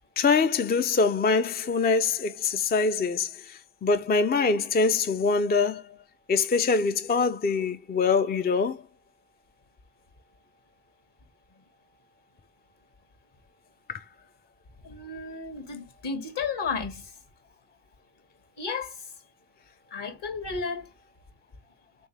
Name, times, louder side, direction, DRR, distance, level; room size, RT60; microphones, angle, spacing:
voice 1, 0.2-5.8 6.3-8.8 13.9-14.0, left 4 dB, 20° left, 0.4 m, -24 dB
voice 2, 14.8-17.1 18.6-19.0 19.9-20.9, left 5 dB, 55° left, 1.6 m, -33 dB
3.5 x 3.4 x 3.2 m
supercardioid pair, 45°, 50 cm